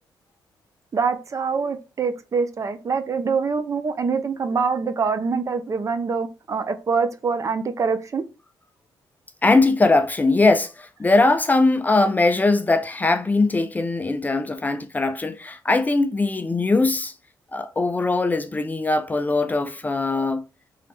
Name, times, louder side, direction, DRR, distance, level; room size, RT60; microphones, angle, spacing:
voice 1, 0.9-8.2, right 5 dB, 40° right, 0.7 m, -24 dB
voice 2, 9.4-17.1 17.5-20.4, left 3 dB, 20° left, 0.5 m, -20 dB
3.8 x 3.3 x 4.2 m
cardioid pair, 105°, 9 cm